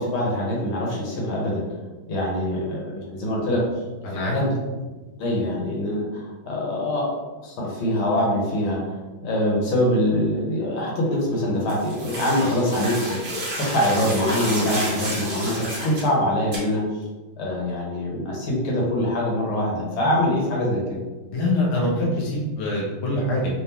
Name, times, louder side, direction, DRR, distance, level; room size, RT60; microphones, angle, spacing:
voice 1, 0.0-1.6 2.1-3.6 4.1-4.5 5.2-7.2 7.4-9.0 9.2-16.8 17.4-20.8, left 1 dB, 75° left, -3 dB, 1.9 m, -24 dB
voice 2, 4.0-4.4 21.3-23.5, left 1 dB, 40° left, -5 dB, 1.1 m, -24 dB
sound 1, 11.7-16.1 16.5-16.6, right 1 dB, 40° right, 1.0 m, -31 dB
3.9 x 3.4 x 2.9 m, 1.2 s
omnidirectional pair, 2.3 m